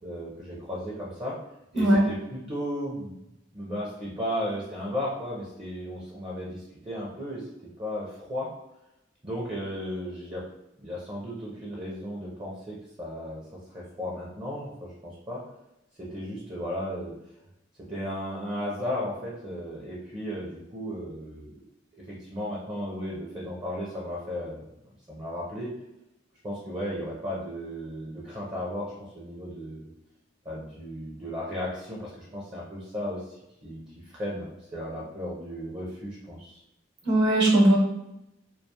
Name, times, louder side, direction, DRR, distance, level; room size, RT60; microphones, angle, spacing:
voice 1, 0.0-1.4 1.7-3.1 3.5-7.4 7.8-8.5 9.2-10.4 10.8-13.4 13.7-15.4 16.0-17.1 17.9-21.5 22.0-24.6 25.1-25.7 26.4-29.9 30.4-36.6, equal, 25° right, -4 dB, 0.5 m, -35 dB
voice 2, 37.0-37.8, right 1 dB, 65° right, -3 dB, 0.9 m, -19 dB
2.4 x 2.2 x 2.8 m, 0.88 s
head